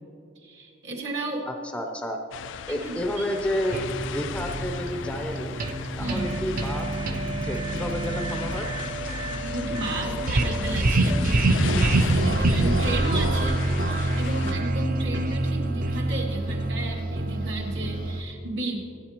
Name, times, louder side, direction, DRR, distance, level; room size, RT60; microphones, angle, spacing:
voice 1, 0.4-1.5 2.7-3.3 6.0-6.3 9.3-18.8, right 1 dB, 65° right, -1 dB, 2.2 m, -33 dB
voice 2, 1.5-2.2 2.7-3.8 4.1-5.6 6.0-7.2 7.4-8.7, equal, 5° left, 4 dB, 0.6 m, -31 dB
sound 1, 2.3-14.5, left 8 dB, 65° left, 0.3 m, -37 dB
sound 2, 3.7-18.2, right 2 dB, 45° right, 0.6 m, -26 dB
25.0 x 8.7 x 2.9 m, 2.7 s
head